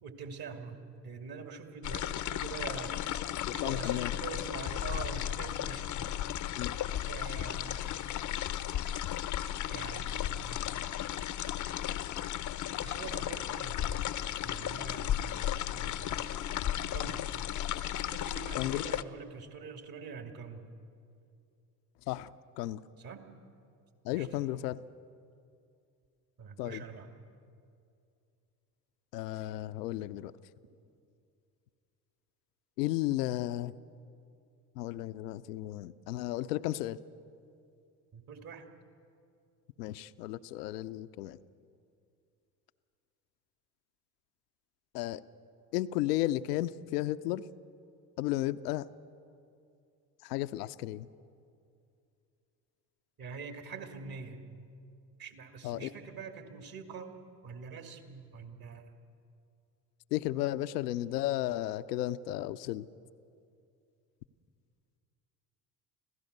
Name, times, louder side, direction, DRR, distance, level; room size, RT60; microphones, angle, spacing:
voice 1, 0.0-3.2 3.4-6.4 7.1-7.9 9.6-10.6 12.8-14.1 14.4-15.4 15.7-16.2 16.9-17.5 18.1-20.7 23.0-23.2 24.1-24.3 26.4-27.1 38.1-38.6 53.2-54.4 55.2-57.1 57.4-58.9, right 5 dB, 45° right, 5 dB, 2.5 m, -45 dB
sound 1, 1.8-19.0, left 11 dB, 40° left, 0.7 m, -35 dB
voice 2, 3.5-4.1 6.6-6.7 18.6-18.8 22.1-22.3 22.6-22.8 24.0-24.8 26.6-26.9 29.1-30.3 32.8-33.7 34.8-37.0 39.8-41.4 44.9-45.2 45.7-47.4 48.2-48.9 50.2-51.1 55.6-55.9 60.1-62.9, left 15 dB, 75° left, 14 dB, 0.7 m, -33 dB
26.0 x 16.5 x 6.7 m, 2.5 s
hypercardioid pair, 65°, 48 cm